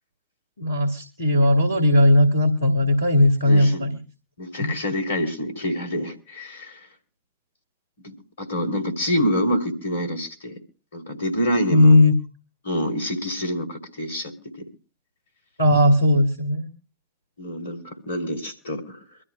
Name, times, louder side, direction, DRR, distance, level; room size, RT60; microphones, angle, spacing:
voice 1, 0.6-3.9 4.6-4.7 11.7-12.1 15.6-16.7, left 1 dB, 80° left, 4 dB, 1.9 m, -17 dB
voice 2, 3.5-3.9 4.4-6.8 8.0-10.6 10.9-12.1 12.6-14.7 17.4-19.0, equal, 65° left, 6 dB, 2.9 m, -27 dB
24.5 x 13.5 x 2.2 m, 0.34 s
figure-of-eight pair, 90°, 0 cm